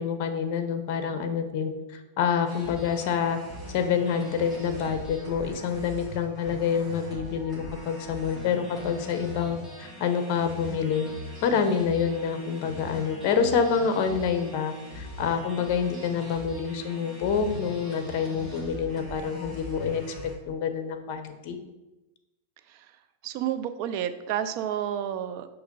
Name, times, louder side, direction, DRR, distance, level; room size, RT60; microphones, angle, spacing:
voice 1, 0.0-3.4 3.7-11.1 11.4-20.0 20.5-21.6, left 6 dB, 50° left, 9 dB, 0.7 m, -27 dB
sound 1, 2.5-20.3, equal, 5° right, 1.7 m, -41 dB
voice 2, 23.2-25.5, right 10 dB, 50° right, 10 dB, 0.5 m, -30 dB
6.4 x 2.8 x 5.2 m, 1.1 s
supercardioid pair, 135°, 0 cm